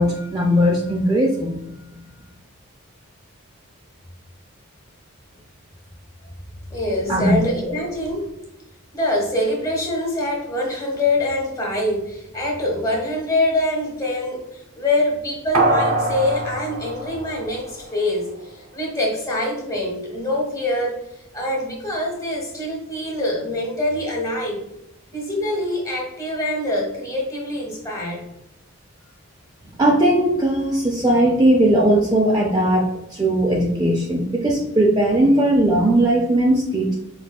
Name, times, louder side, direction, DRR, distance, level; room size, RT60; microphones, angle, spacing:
voice 1, 0.0-1.6 7.1-7.4 29.8-36.9, right 1 dB, 20° right, -1 dB, 0.3 m, -18 dB
voice 2, 6.7-8.3 8.9-24.6 25.1-28.2 35.1-35.2, left 1 dB, 15° left, -2 dB, 0.8 m, -24 dB
sound 1, 15.5-18.1 18.5-18.6, right 2 dB, 90° right, 0.7 m, -23 dB
4.6 x 2.6 x 2.2 m, 0.86 s
head